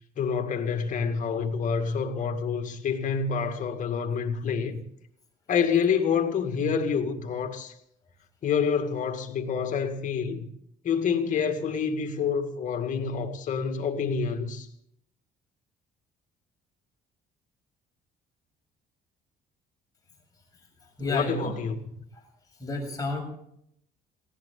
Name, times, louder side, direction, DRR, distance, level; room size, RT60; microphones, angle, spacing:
voice 1, 0.2-4.8 5.5-7.7 8.4-10.5 10.8-14.7 21.0-21.8, left 6 dB, 50° left, 2.1 m, -27 dB
voice 2, 21.0-21.5 22.6-23.2, left 2 dB, 20° left, 7.1 m, -30 dB
19.5 x 16.5 x 3.9 m
cardioid pair, 110°, 17 cm